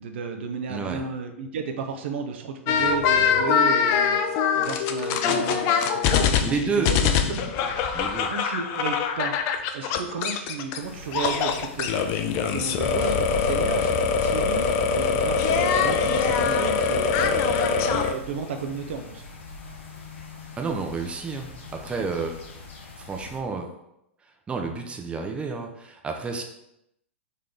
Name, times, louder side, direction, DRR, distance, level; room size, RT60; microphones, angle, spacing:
voice 1, 0.0-7.5 8.3-9.4 9.7-19.2, right 5 dB, 60° right, 5 dB, 0.5 m, -33 dB
voice 2, 0.7-1.0 6.4-6.9 7.9-8.3 20.6-22.4 23.0-23.7 24.5-26.4, right 4 dB, 15° right, 3 dB, 0.5 m, -30 dB
sound 1, 2.7-10.8 11.1-18.1, left 6 dB, 40° left, 0.4 m, -23 dB
sound 2, 10.8-23.4, left 3 dB, 65° left, 1.0 m, -43 dB
4.0 x 3.1 x 3.7 m, 0.83 s
figure-of-eight pair, 100°, 7 cm